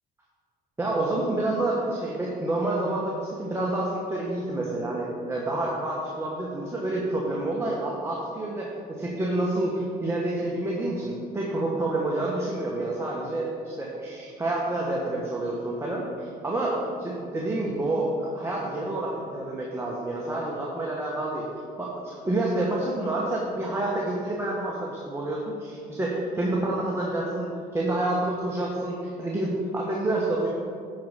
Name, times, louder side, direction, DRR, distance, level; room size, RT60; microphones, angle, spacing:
voice 1, 0.8-21.5 21.8-27.5 27.7-30.5, right 2 dB, 15° right, -4 dB, 1.3 m, -28 dB
10.5 x 4.8 x 5.8 m, 2.3 s
cardioid pair, 110°, 17 cm